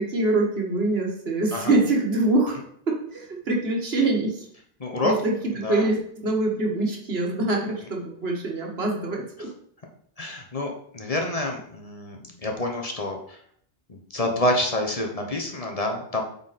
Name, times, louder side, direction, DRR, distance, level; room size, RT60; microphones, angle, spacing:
voice 1, 0.0-2.6 2.9-4.5 5.0-9.5, right 2 dB, 75° right, 1 dB, 1.7 m, -24 dB
voice 2, 4.8-5.1 5.6-5.9 10.2-12.2 12.4-13.4 13.9-16.2, left 1 dB, 35° left, 2 dB, 1.1 m, -27 dB
8.3 x 4.2 x 4.2 m, 0.64 s
omnidirectional pair, 1.0 m